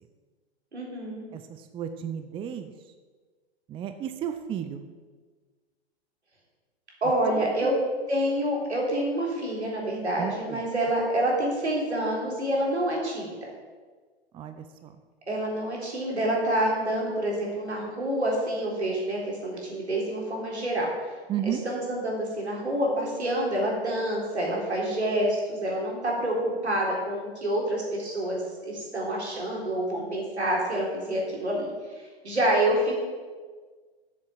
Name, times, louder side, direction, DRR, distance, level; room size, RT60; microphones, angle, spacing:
voice 1, 0.7-1.2 7.0-7.7 8.1-13.4 15.3-20.9 21.4-33.0, right 1 dB, 85° right, -2 dB, 3.8 m, -27 dB
voice 2, 1.3-2.7 3.7-4.9 7.3-7.7 10.2-10.6 14.3-14.9 21.3-21.6, right 9 dB, 15° right, 9 dB, 0.6 m, -33 dB
7.7 x 7.6 x 7.5 m, 1.5 s
figure-of-eight pair, 110°, 33 cm